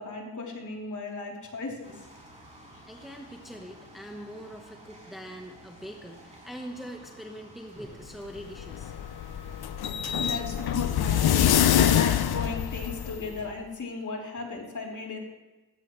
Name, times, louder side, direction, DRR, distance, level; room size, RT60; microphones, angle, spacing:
voice 1, 0.0-2.0 2.7-2.8 10.2-15.2, left 3 dB, 45° left, -1 dB, 3.5 m, -36 dB
sound 1, 1.8-11.4, right 1 dB, 15° right, 5.2 m, -52 dB
voice 2, 2.9-8.9, equal, ahead, 2 dB, 1.2 m, -43 dB
sound 2, 8.4-13.4, left 10 dB, 65° left, 0.7 m, -25 dB
17.5 x 16.0 x 3.2 m, 1.2 s
cardioid pair, 90°, 40 cm